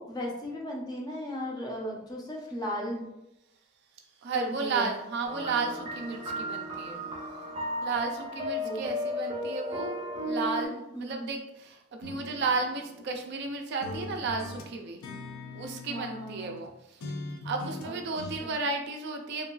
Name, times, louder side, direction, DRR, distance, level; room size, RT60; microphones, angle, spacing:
voice 1, 0.0-3.1 4.3-4.9 8.6-8.9 10.9-11.3 15.9-16.5 17.8-18.5, equal, 20° left, -2 dB, 0.5 m, -36 dB
voice 2, 4.2-7.0 7.8-15.0 15.5-17.0 17.4-19.5, right 4 dB, 55° right, 3 dB, 0.3 m, -33 dB
sound 1, 5.2-10.7, equal, 30° right, 0.7 m, -34 dB
sound 2, 12.0-13.5 13.8-16.7 17.0-18.4, left 2 dB, 85° left, 0.5 m, -41 dB
2.8 x 2.3 x 2.3 m, 0.87 s
head